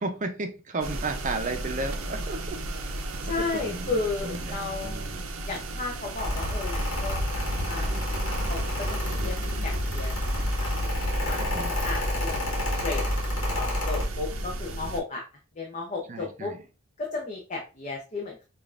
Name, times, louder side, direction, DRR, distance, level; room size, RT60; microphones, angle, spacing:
voice 1, 0.0-2.6 3.2-4.0 4.2-5.2 11.4-11.7 16.1-16.6, right 3 dB, 35° right, 6 dB, 0.6 m, -34 dB
sound 1, 0.8-15.0, right 2 dB, 80° right, 0.6 m, -34 dB
voice 2, 3.2-5.1 5.5-9.4 9.6-11.4 11.8-13.0 13.5-15.2 15.5-16.5 17.0-18.4, left 3 dB, 35° left, -1 dB, 0.6 m, -34 dB
Mechanical fan, 6.2-14.1, left 1 dB, 65° left, 1.3 m, -29 dB
5.0 x 2.5 x 2.5 m, 0.32 s
head